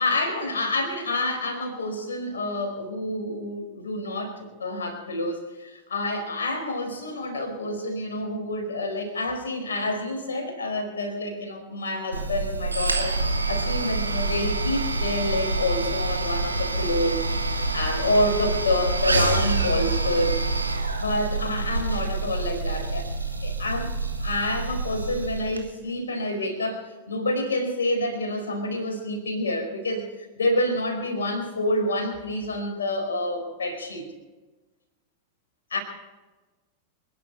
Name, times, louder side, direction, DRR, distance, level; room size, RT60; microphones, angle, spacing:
voice 1, 0.0-20.4 21.0-23.1 23.4-23.9 24.2-34.1 35.7-35.8, left 1 dB, 70° left, 3 dB, 4.6 m, -28 dB
sound 1, 12.1-25.6, right 3 dB, 85° right, 1.6 m, -27 dB
27.5 x 10.5 x 4.5 m, 1.2 s
figure-of-eight pair, 90°, 0 cm